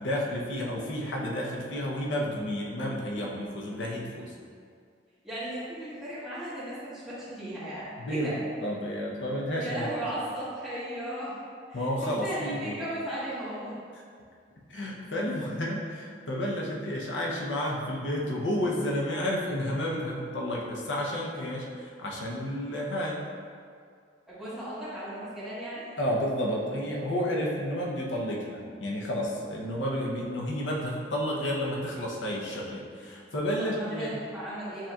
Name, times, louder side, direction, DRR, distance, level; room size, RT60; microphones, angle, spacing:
voice 1, 0.0-4.3 8.0-8.3 8.6-9.9 11.7-12.7 14.7-23.2 26.0-34.1, equal, 85° left, -3 dB, 0.8 m, -31 dB
voice 2, 5.2-8.4 9.6-11.3 11.7-13.8 24.3-25.9 33.6-34.9, right 1 dB, 5° right, -12 dB, 1.4 m, -36 dB
7.5 x 2.9 x 2.4 m, 2.1 s
head